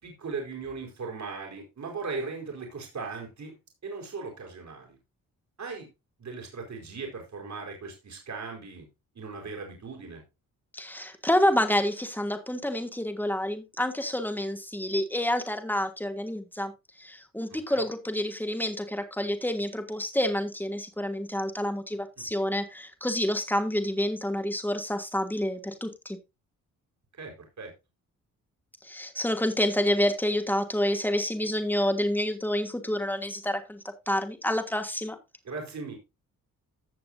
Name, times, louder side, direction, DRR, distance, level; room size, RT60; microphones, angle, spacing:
voice 1, 0.0-3.6 3.8-5.0 5.6-5.9 6.2-8.9 9.1-10.2 17.7-17.8 22.2-22.3 27.2-27.7 35.4-36.0, right 4 dB, 55° right, 1 dB, 4.8 m, -38 dB
voice 2, 10.7-16.7 17.0-26.2 28.8-33.8 34.1-35.2, left 1 dB, 5° left, 6 dB, 2.6 m, -28 dB
16.0 x 6.6 x 2.7 m, 0.24 s
cardioid pair, 65°, 34 cm